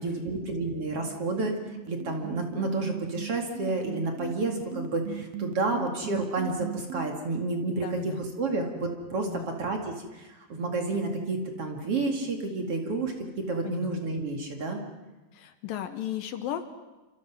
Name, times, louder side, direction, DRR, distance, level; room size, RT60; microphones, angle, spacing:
voice 1, 0.0-1.5 1.9-13.1 13.5-14.8, right 3 dB, 45° right, 3 dB, 2.8 m, -30 dB
sound 1, 1.0-7.0, right 8 dB, 70° right, 1.7 m, -38 dB
voice 2, 7.7-8.2 9.3-9.5 13.6-13.9 15.3-16.6, left 11 dB, 70° left, 9 dB, 2.6 m, -35 dB
28.5 x 25.5 x 6.1 m, 1.1 s
omnidirectional pair, 4.4 m